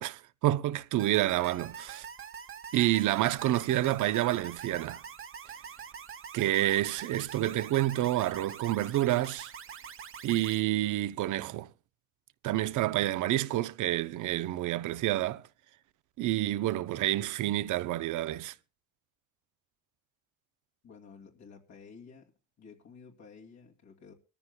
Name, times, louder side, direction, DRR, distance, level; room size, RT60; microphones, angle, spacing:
voice 1, 0.0-2.1 2.7-5.0 6.3-9.5 10.2-11.7 12.4-15.4 16.2-18.5, right 14 dB, 80° right, 0.7 m, -28 dB
sound 1, 1.0-10.6, right 7 dB, 45° right, 1.1 m, -45 dB
voice 2, 20.8-22.3 22.6-24.1, left 5 dB, 65° left, 2.6 m, -52 dB
24.0 x 14.0 x 2.3 m
cardioid pair, 90°, 30 cm